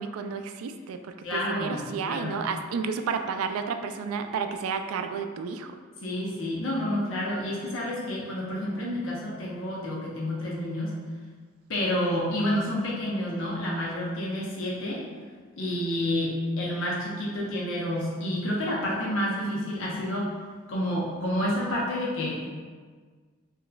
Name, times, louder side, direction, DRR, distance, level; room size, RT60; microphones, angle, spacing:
voice 1, 0.0-5.8, right 5 dB, 90° right, 8 dB, 0.3 m, -31 dB
voice 2, 1.2-2.4 6.0-10.9 11.7-15.0 15.6-20.3 20.7-22.5, left 1 dB, 70° left, -5 dB, 0.8 m, -29 dB
4.8 x 3.1 x 2.4 m, 1.5 s
head